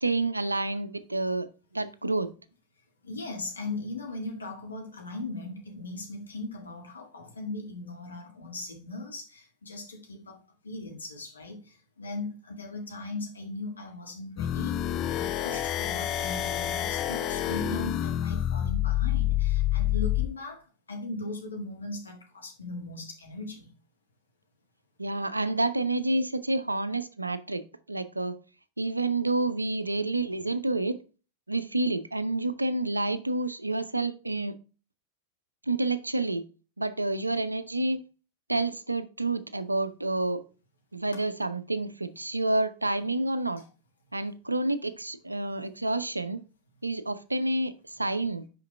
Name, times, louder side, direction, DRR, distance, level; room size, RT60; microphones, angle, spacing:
voice 1, 0.0-1.5 1.7-2.3 25.0-27.6 27.9-28.4 28.8-31.0 31.5-34.6 35.7-36.4 36.8-38.0 38.5-40.4 40.9-43.6 44.1-46.4 46.8-48.4, right 2 dB, 85° right, 0.5 m, -29 dB
voice 2, 3.0-23.7 43.6-43.7, left 2 dB, 75° left, 1.8 m, -39 dB
sound 1, 14.4-20.3, left 12 dB, 35° left, 0.4 m, -28 dB
5.7 x 5.3 x 3.4 m
figure-of-eight pair, 90°, 0 cm